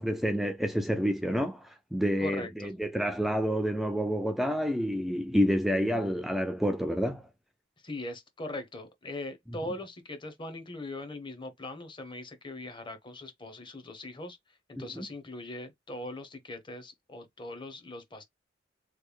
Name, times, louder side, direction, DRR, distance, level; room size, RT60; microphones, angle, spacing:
voice 1, 0.0-7.2 14.8-15.1, equal, ahead, 0.3 m, -29 dB
voice 2, 2.2-2.7 7.8-14.4 14.7-18.2, left 2 dB, 25° left, 0.9 m, -40 dB
3.2 x 2.3 x 3.3 m
head